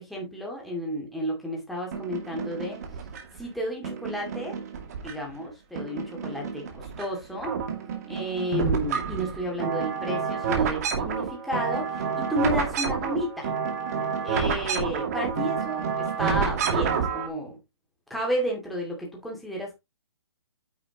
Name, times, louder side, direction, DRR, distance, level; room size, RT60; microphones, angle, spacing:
voice 1, 0.0-2.8 3.3-4.6 5.0-7.6 8.1-13.5 14.2-17.6 18.1-19.7, equal, ahead, 2.4 m, -32 dB
sound 1, 1.9-3.4 3.8-5.4 5.8-7.1 7.3-17.3, right 6 dB, 35° right, 2.4 m, -29 dB
9.4 x 7.0 x 3.0 m
hypercardioid pair, 170°, 14 cm